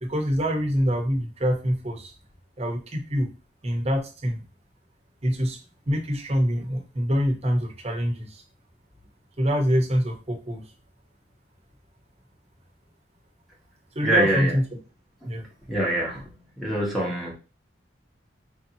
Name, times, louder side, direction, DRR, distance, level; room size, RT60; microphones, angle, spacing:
voice 1, 0.0-2.1 2.6-3.3 3.6-4.4 5.2-5.6 5.9-8.4 9.4-10.6 13.9-14.6 15.2-15.4, equal, 35° right, 2 dB, 0.9 m, -25 dB
voice 2, 14.0-14.5 15.2-15.3 15.7-16.3 16.6-17.3, right 1 dB, ahead, -5 dB, 1.0 m, -24 dB
5.0 x 2.7 x 2.8 m, 0.32 s
head